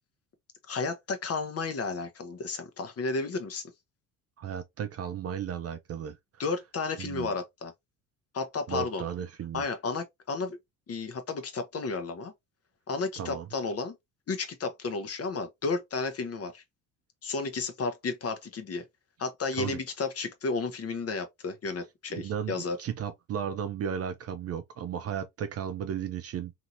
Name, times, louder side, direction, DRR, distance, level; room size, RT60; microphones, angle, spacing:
voice 1, 0.7-3.7 6.4-7.7 8.3-9.0 9.5-10.6 10.9-12.3 12.9-13.9 14.3-16.6 17.2-18.8 19.2-22.8, left 4 dB, 35° left, 0.8 m, -32 dB
voice 2, 4.4-6.2 7.0-7.3 8.7-9.7 13.2-13.4 19.5-19.8 22.2-26.5, right 8 dB, 35° right, 0.4 m, -34 dB
2.8 x 2.7 x 2.5 m
hypercardioid pair, 60°, 42 cm